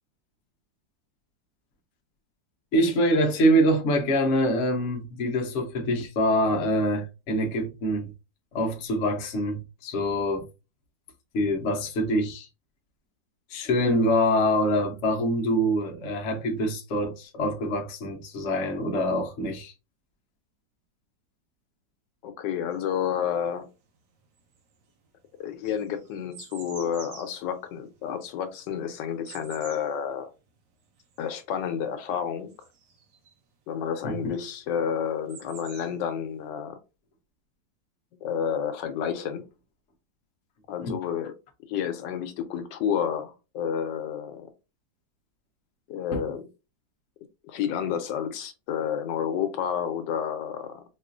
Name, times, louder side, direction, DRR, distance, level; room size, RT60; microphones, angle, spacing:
voice 1, 2.7-8.1 8.5-10.5 11.3-12.5 13.5-19.7 34.0-34.3 40.8-41.0 46.1-46.2, equal, 55° left, 0.8 m, -25 dB
voice 2, 22.2-23.7 25.4-30.3 31.2-32.5 33.7-36.8 38.2-39.5 40.7-41.3 41.7-44.5 45.9-46.5 47.4-50.8, left 8 dB, 80° left, 1.3 m, -30 dB
sound 1, 22.7-23.9 24.2-33.5 34.5-34.6 34.8-36.4, right 6 dB, 80° right, 1.6 m, -49 dB
4.7 x 2.4 x 2.5 m
omnidirectional pair, 2.0 m